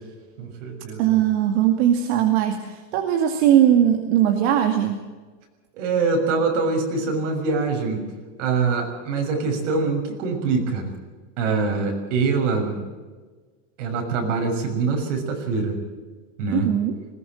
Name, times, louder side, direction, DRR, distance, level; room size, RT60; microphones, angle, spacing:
voice 1, 0.4-1.2 5.7-8.0 8.4-10.9 11.4-12.8 13.8-15.8 16.4-16.7, right 4 dB, 75° right, 3 dB, 6.6 m, -24 dB
voice 2, 1.0-5.0 16.5-16.9, right 10 dB, 60° right, 4 dB, 2.4 m, -19 dB
20.5 x 18.5 x 7.7 m, 1.4 s
supercardioid pair, 160°, 37 cm